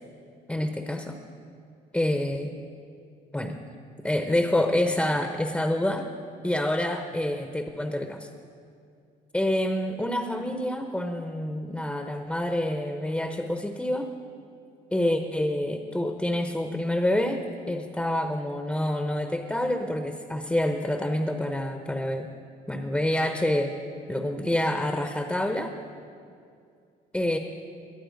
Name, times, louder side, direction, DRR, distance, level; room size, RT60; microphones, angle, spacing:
voice 1, 0.5-1.2 1.9-2.5 3.3-3.6 4.0-6.0 6.4-8.3 9.3-14.1 14.9-22.3 22.7-23.7 24.1-25.7 27.1-27.4, left 1 dB, 5° left, 5 dB, 0.8 m, -27 dB
22.0 x 8.7 x 5.2 m, 2.4 s
cardioid pair, 110°, 17 cm